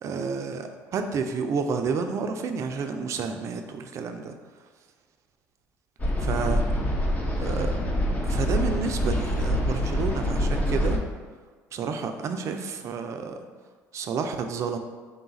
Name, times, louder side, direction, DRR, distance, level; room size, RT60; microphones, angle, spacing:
voice 1, 0.0-4.4 6.2-6.6 7.4-7.8 8.2-11.0 11.7-13.4 13.9-14.8, right 5 dB, 55° right, 6 dB, 0.4 m, -30 dB
sound 1, 6.0-11.0, equal, 25° left, 0.7 m, -25 dB
3.7 x 2.4 x 4.0 m, 1.4 s
supercardioid pair, 85°, 6 cm